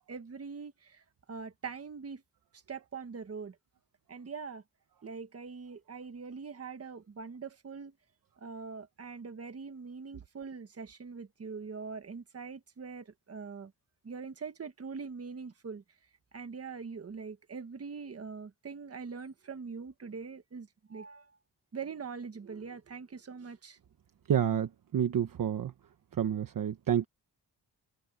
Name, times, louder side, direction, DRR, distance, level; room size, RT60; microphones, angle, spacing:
voice 1, 0.1-2.2 2.5-3.6 4.1-4.6 5.0-8.0 8.4-13.7 14.0-15.8 16.3-21.4 21.7-23.8, right 5 dB, 35° right, 1.5 m, -43 dB
voice 2, 24.3-25.7 26.2-27.0, right 9 dB, 55° right, 1.0 m, -29 dB
wide cardioid pair, 165°, 41 cm